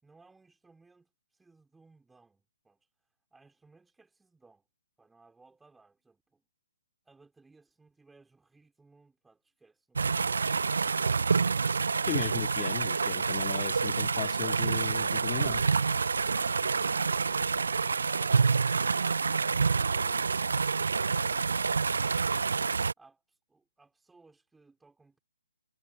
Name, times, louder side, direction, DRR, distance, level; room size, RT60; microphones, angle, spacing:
voice 1, 0.0-2.9 3.3-4.7 5.0-6.4 7.0-10.7 23.0-25.2, right 3 dB, 5° right, 5.2 m, -61 dB
sound 1, 9.9-22.9, right 5 dB, 65° right, 0.7 m, -27 dB
voice 2, 12.1-15.6, left 29 dB, 25° left, 0.9 m, -36 dB
figure-of-eight pair, 135°, 0 cm